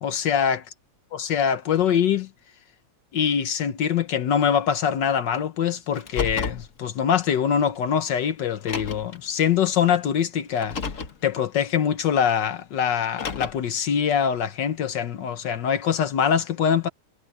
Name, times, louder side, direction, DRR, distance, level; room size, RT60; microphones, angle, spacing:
voice 1, 0.0-0.6 1.1-2.3 3.1-10.8 11.2-16.9, left 8 dB, 80° left, 1.7 m, -23 dB
Car, 5.9-6.7 7.8-7.9 8.6-9.2 10.5-11.2 13.0-13.7, left 5 dB, 45° left, 1.7 m, -31 dB
omnidirectional pair, 1.9 m